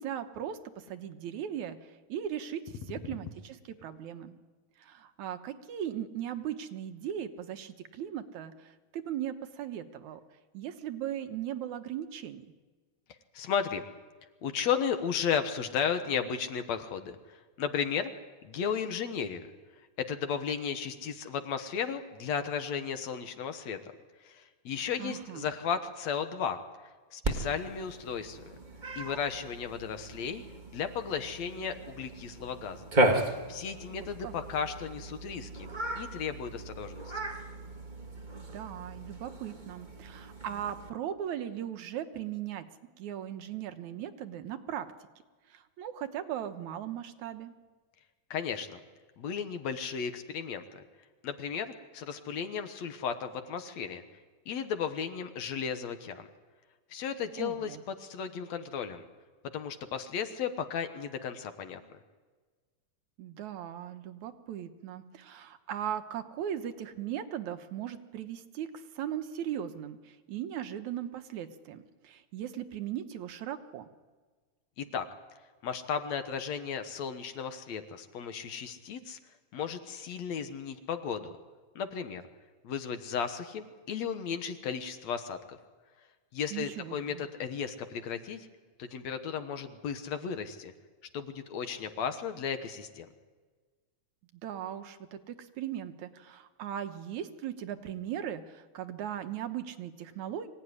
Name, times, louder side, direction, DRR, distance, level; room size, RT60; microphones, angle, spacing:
voice 1, 0.0-2.6 2.9-3.6 3.8-4.4 4.8-10.2 10.5-12.5 25.0-25.5 33.9-34.3 38.3-42.7 43.0-44.9 45.5-47.5 57.4-57.8 63.2-73.9 86.5-87.3 94.4-100.5, right 10 dB, 75° right, 9 dB, 2.4 m, -38 dB
voice 2, 13.3-13.8 14.4-18.1 18.4-19.5 20.0-23.9 24.2-26.6 27.1-28.6 29.0-30.4 30.7-32.8 33.5-35.7 36.0-37.1 48.3-48.8 49.2-50.8 51.2-54.0 54.5-56.3 56.9-59.1 59.5-61.8 74.8-75.1 75.6-79.2 79.5-81.4 81.8-82.2 82.6-85.6 86.3-88.5 88.8-90.7 91.1-93.1, left 7 dB, 65° left, 8 dB, 2.4 m, -34 dB
Cat, 27.2-40.9, right 1 dB, 20° right, 1.3 m, -35 dB
24.5 x 17.0 x 9.7 m, 1.4 s
omnidirectional pair, 3.5 m